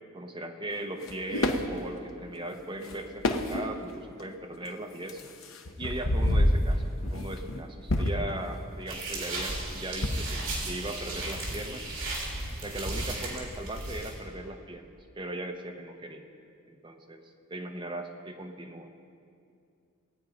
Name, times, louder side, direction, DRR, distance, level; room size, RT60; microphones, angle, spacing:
voice 1, 0.1-5.3 5.8-11.8 12.6-14.9 15.2-16.3 16.7-17.2 17.5-18.9, right 1 dB, 20° right, 3 dB, 0.9 m, -38 dB
sound 1, 1.0-1.7 2.8-3.0 3.2-3.8 4.5-4.6 5.1-7.6 7.9-8.4 9.5-10.7 11.0-11.4, left 1 dB, 70° left, 0.9 m, -28 dB
sound 2, 8.9-14.1, right 2 dB, 60° right, 3.4 m, -35 dB
19.0 x 9.0 x 5.1 m, 2.4 s
head